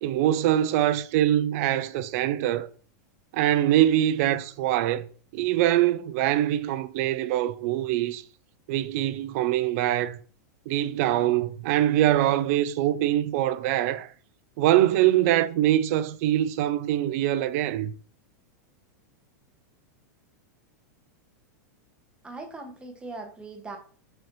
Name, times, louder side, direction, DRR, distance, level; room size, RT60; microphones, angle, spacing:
voice 1, 0.0-2.7 3.3-5.0 5.3-8.2 8.7-10.2 10.7-14.1 14.6-17.9, right 13 dB, 55° right, 0.3 m, -23 dB
voice 2, 22.2-23.8, right 3 dB, 10° right, 0.8 m, -40 dB
3.9 x 3.2 x 2.9 m
hypercardioid pair, 135°, 10 cm